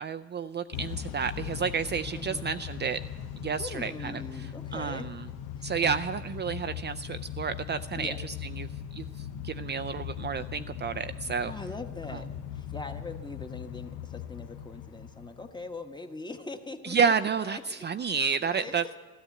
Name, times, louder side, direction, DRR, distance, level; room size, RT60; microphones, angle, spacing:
voice 1, 0.0-3.0 3.4-4.2 4.7-5.3 5.6-11.5 12.1-12.2 16.8-18.8, right 6 dB, 35° right, 10 dB, 0.4 m, -30 dB
Motor vehicle (road) / Engine starting / Accelerating revving vroom, 0.7-15.7, left 10 dB, 90° left, 0.9 m, -39 dB
voice 2, 2.1-2.5 3.6-5.1 5.6-5.7 8.0-8.2 11.4-12.3 12.5-17.1 17.4-17.8 18.1-18.8, left 3 dB, 15° left, 6 dB, 1.2 m, -41 dB
13.5 x 12.0 x 8.2 m, 1.4 s
cardioid pair, 90°, 30 cm